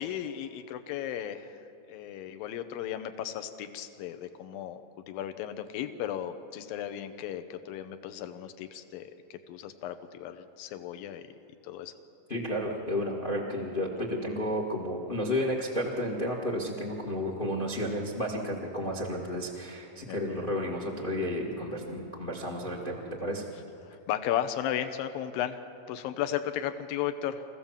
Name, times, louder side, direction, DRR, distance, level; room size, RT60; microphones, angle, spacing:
voice 1, 0.0-1.6 1.9-4.8 5.1-11.2 11.6-11.9 20.1-20.2 23.9-27.5, left 10 dB, 75° left, 9 dB, 2.2 m, -35 dB
voice 2, 12.3-23.4, left 1 dB, 50° left, 0 dB, 0.6 m, -32 dB
25.5 x 15.5 x 7.3 m, 2.7 s
omnidirectional pair, 5.0 m